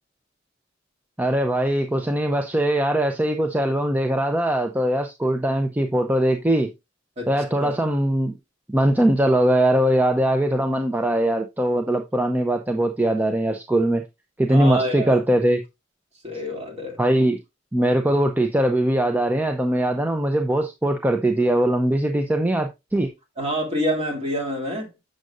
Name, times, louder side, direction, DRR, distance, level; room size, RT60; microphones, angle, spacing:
voice 1, 1.2-6.7 7.3-8.3 8.7-14.0 14.4-15.6 17.0-17.4 17.7-23.1, right 1 dB, 10° right, 0.5 m, -21 dB
voice 2, 14.5-15.2 16.2-17.0 23.4-24.9, equal, 35° right, 2.4 m, -27 dB
7.8 x 6.4 x 2.4 m
head